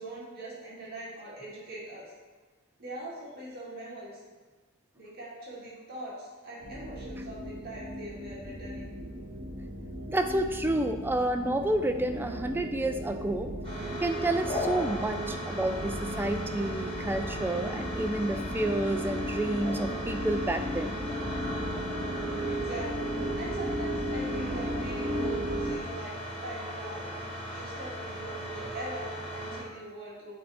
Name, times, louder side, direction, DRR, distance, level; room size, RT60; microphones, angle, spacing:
voice 1, 0.0-2.1 2.8-4.2 4.9-8.9 22.4-23.1 23.4-26.1 26.4-30.4, right 1 dB, 45° right, -7 dB, 2.0 m, -42 dB
sound 1, 6.6-25.8, equal, 75° right, 1.2 m, -36 dB
voice 2, 10.1-13.5 14.0-21.0, right 1 dB, 10° right, 6 dB, 0.3 m, -30 dB
sound 2, 13.6-29.6, equal, 25° left, 1.7 m, -37 dB
7.9 x 3.3 x 4.2 m, 1.3 s
head